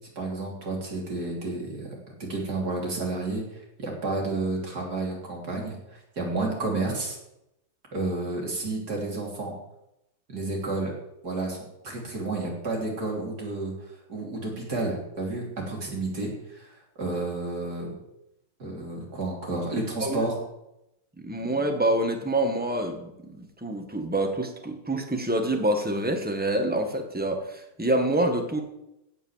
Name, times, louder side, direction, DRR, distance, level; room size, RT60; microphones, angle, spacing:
voice 1, 0.2-1.9 2.2-7.2 7.9-9.5 10.3-10.9 11.2-11.6 11.8-17.9 18.6-20.4, right 2 dB, 45° right, -2 dB, 3.6 m, -31 dB
voice 2, 21.2-28.6, right 1 dB, 5° right, 4 dB, 1.2 m, -27 dB
16.5 x 5.6 x 7.3 m, 0.86 s
omnidirectional pair, 2.3 m